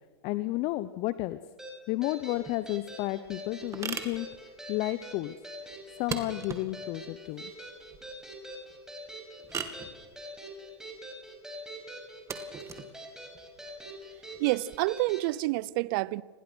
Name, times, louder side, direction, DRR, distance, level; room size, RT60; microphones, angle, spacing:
voice 1, 0.2-1.4 1.9-4.3 4.7-5.3 6.0-7.4, left 18 dB, 45° left, 0.9 m, -32 dB
sound 1, 1.6-15.3, equal, 5° right, 5.6 m, -44 dB
sound 2, 2.3-14.8, right 6 dB, 20° right, 2.5 m, -43 dB
voice 2, 14.4-16.2, right 20 dB, 50° right, 0.7 m, -28 dB
29.5 x 21.5 x 6.3 m
hypercardioid pair, 115°, 14 cm